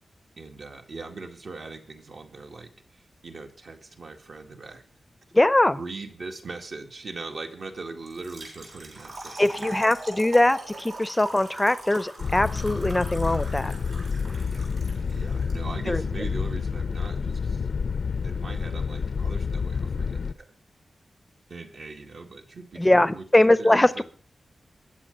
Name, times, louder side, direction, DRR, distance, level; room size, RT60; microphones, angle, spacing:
voice 1, 0.4-4.8 5.7-9.8 15.1-17.7 18.2-20.5 21.5-24.0, right 3 dB, 60° right, 3 dB, 2.1 m, -40 dB
voice 2, 5.3-5.8 9.4-13.7 15.9-16.0 22.8-24.0, left 1 dB, 10° left, 15 dB, 0.6 m, -21 dB
Trickle dribble / Fill (with liquid), 8.1-15.5, right 2 dB, 80° right, 7.2 m, -41 dB
sound 1, 12.2-20.3, left 5 dB, 65° left, 0.6 m, -29 dB
21.5 x 8.1 x 5.4 m, 0.43 s
wide cardioid pair, 155°, 0 cm